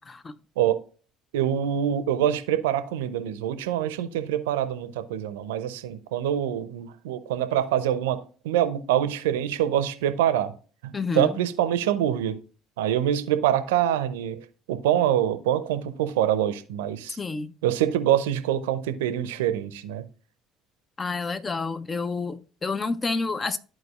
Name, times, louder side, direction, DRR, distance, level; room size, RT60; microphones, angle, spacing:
voice 1, 1.3-10.5 10.8-12.4 12.8-17.2 17.6-20.0, right 11 dB, 75° right, 0.6 m, -25 dB
voice 2, 10.9-11.3 17.2-17.5 21.0-23.6, left 3 dB, 30° left, 0.7 m, -29 dB
13.5 x 4.5 x 2.4 m
hypercardioid pair, 60°, 0 cm